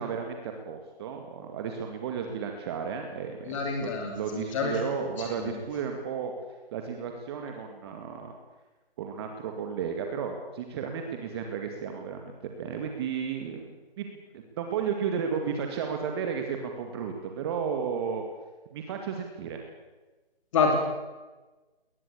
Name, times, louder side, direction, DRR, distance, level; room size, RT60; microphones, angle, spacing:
voice 1, 0.0-6.3 6.7-8.3 9.0-13.7 14.0-14.1 14.3-18.2 18.7-19.6, right 6 dB, 25° right, 4 dB, 2.2 m, -33 dB
voice 2, 3.5-4.7 5.0-5.5 20.5-20.8, left 5 dB, 30° left, 3 dB, 3.1 m, -28 dB
22.0 x 20.0 x 8.5 m, 1.2 s
figure-of-eight pair, 150°, 30 cm